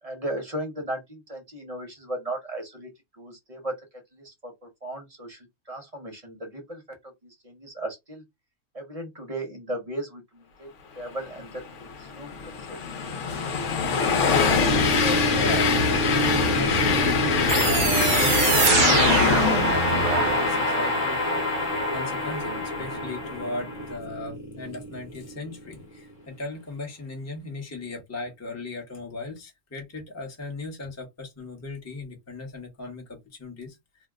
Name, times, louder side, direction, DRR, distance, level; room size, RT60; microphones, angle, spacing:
voice 1, 0.0-2.9 3.2-3.7 4.1-8.2 8.7-10.7 10.9-12.8, right 1 dB, 30° right, 0.9 m, -36 dB
Train, 11.6-21.0, left 5 dB, 60° left, 1.0 m, -24 dB
sound 1, 14.6-25.8, left 1 dB, 40° left, 1.1 m, -27 dB
voice 2, 15.3-21.2 21.9-34.1, left 2 dB, 15° left, 0.7 m, -37 dB
sound 2, 17.5-20.4, right 7 dB, 75° right, 1.1 m, -24 dB
2.8 x 2.0 x 3.5 m
omnidirectional pair, 1.5 m